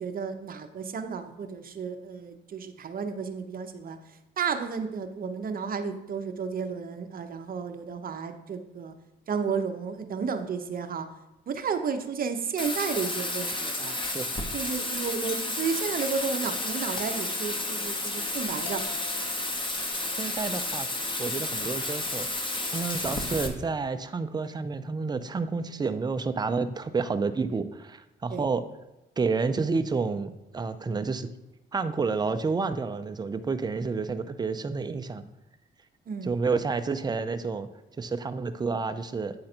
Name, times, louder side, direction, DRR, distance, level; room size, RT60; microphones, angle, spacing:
voice 1, 0.0-4.0 4.4-8.9 9.3-11.1 11.5-14.0 14.5-18.8 28.3-28.5 36.1-36.4, right 6 dB, 45° right, 7 dB, 0.8 m, -32 dB
Bathtub (filling or washing), 12.6-23.5, left 2 dB, 25° left, 1.1 m, -31 dB
sound 1, 13.5-13.7 15.3-15.6 17.0-17.3 18.7-20.1, left 5 dB, 60° left, 0.8 m, -45 dB
voice 2, 20.2-20.9 21.2-22.3 22.7-28.6 29.2-31.3 31.7-35.3 36.2-37.7 38.0-39.3, right 4 dB, 20° right, 9 dB, 0.5 m, -29 dB
8.6 x 3.8 x 4.4 m, 0.99 s
cardioid pair, 90°, 20 cm